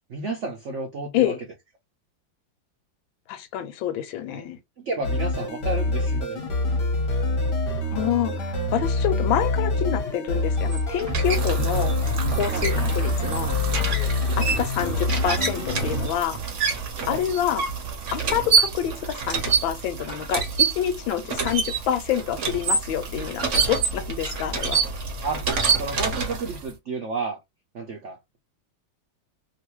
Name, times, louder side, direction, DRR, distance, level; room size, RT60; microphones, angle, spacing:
voice 1, 0.1-1.3 4.3-4.5 4.8-6.4 12.5-12.9 14.2-14.4 17.1-17.3 25.2-25.4 25.8-27.4 27.7-28.2, right 3 dB, 80° right, 0.6 m, -31 dB
voice 2, 3.3-4.6 7.9-12.0 12.3-13.6 14.4-16.4 17.1-17.6 18.1-20.4 20.7-24.8, left 10 dB, 90° left, 1.4 m, -27 dB
sound 1, 5.0-16.1, left 2 dB, 45° left, 0.8 m, -25 dB
sound 2, 8.4-9.0 11.1-13.7, right 6 dB, 25° right, 1.1 m, -36 dB
sound 3, 10.5-26.7, right 5 dB, 55° right, 0.8 m, -27 dB
3.0 x 2.6 x 2.9 m
omnidirectional pair, 2.1 m